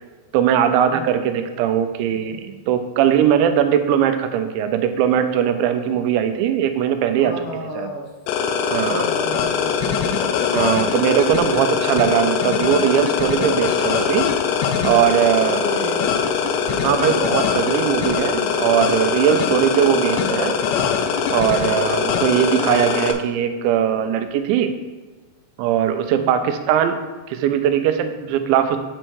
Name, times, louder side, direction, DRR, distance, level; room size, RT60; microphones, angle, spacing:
voice 1, 0.3-7.3 7.8-7.9 8.7-9.0 10.5-14.3 14.8-15.6 16.8-20.6 21.3-24.7 25.6-27.0 27.3-28.8, right 9 dB, 90° right, 8 dB, 2.9 m, -20 dB
voice 2, 0.9-1.2 7.2-8.1 8.9-10.2 15.4-16.4 19.8-20.0 26.1-26.4, left 1 dB, 70° left, -2 dB, 2.7 m, -33 dB
sound 1, 8.3-23.1, left 6 dB, 85° left, 2.8 m, -22 dB
8.8 x 4.4 x 4.6 m, 1.3 s
omnidirectional pair, 5.1 m